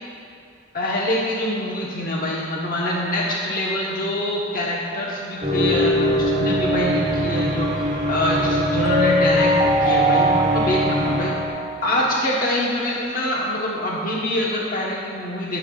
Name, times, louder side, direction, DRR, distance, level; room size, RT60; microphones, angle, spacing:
voice 1, 0.7-11.4 11.8-15.6, left 1 dB, 50° left, -4 dB, 1.1 m, -25 dB
sound 1, 5.4-11.5, equal, 40° right, 1.9 m, -20 dB
20.0 x 8.0 x 2.4 m, 2.4 s
head